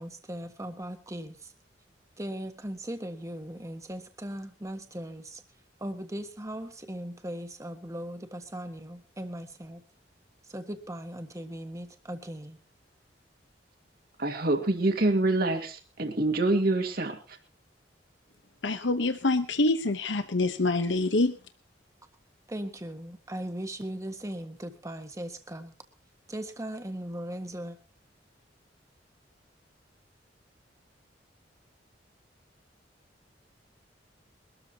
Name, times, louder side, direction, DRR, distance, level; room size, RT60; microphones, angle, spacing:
voice 1, 0.0-1.5 2.2-5.4 5.8-9.8 10.5-12.6 22.5-25.7 26.3-27.8, right 1 dB, 15° right, 7 dB, 1.5 m, -38 dB
voice 2, 14.2-17.2, right 2 dB, 55° right, 4 dB, 2.2 m, -26 dB
voice 3, 18.6-21.4, left 2 dB, 90° left, 9 dB, 1.1 m, -26 dB
23.5 x 13.0 x 3.0 m, 0.31 s
head